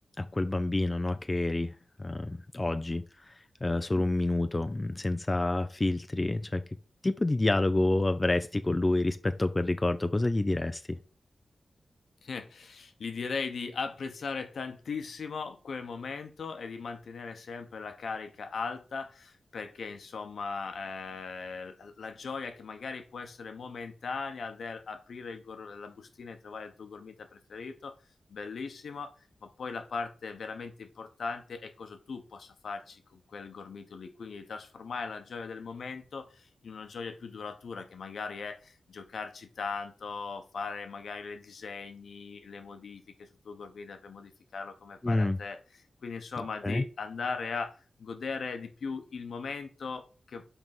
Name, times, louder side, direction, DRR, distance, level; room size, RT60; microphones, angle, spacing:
voice 1, 0.2-1.7 2.0-3.0 3.6-6.6 7.0-11.0 45.0-45.4 46.6-46.8, left 2 dB, 25° left, 10 dB, 0.5 m, -28 dB
voice 2, 12.2-27.9 28.3-29.1 29.4-50.5, left 4 dB, 80° left, 7 dB, 1.0 m, -39 dB
5.6 x 4.7 x 5.4 m, 0.36 s
cardioid pair, 65°, 0 cm